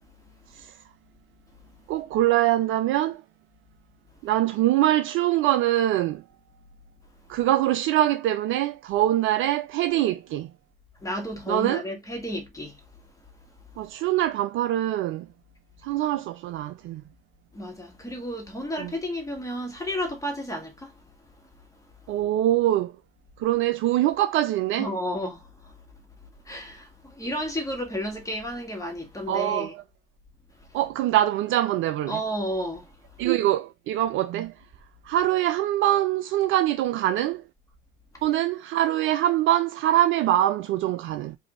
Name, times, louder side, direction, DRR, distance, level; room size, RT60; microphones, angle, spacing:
voice 1, 1.9-3.2 4.2-6.2 7.3-10.5 11.5-11.8 13.8-15.3 15.8-17.0 18.8-18.9 22.1-22.9 23.4-24.9 29.3-29.8 30.7-32.2 33.2-34.5 35.1-37.4 38.2-41.4, right 13 dB, 45° right, 0.4 m, -23 dB
voice 2, 11.0-12.8 17.5-21.1 24.8-25.8 26.4-29.7 30.7-30.8 32.1-33.2, equal, 10° left, 1.7 m, -32 dB
4.8 x 2.7 x 3.1 m
figure-of-eight pair, 60°, 30 cm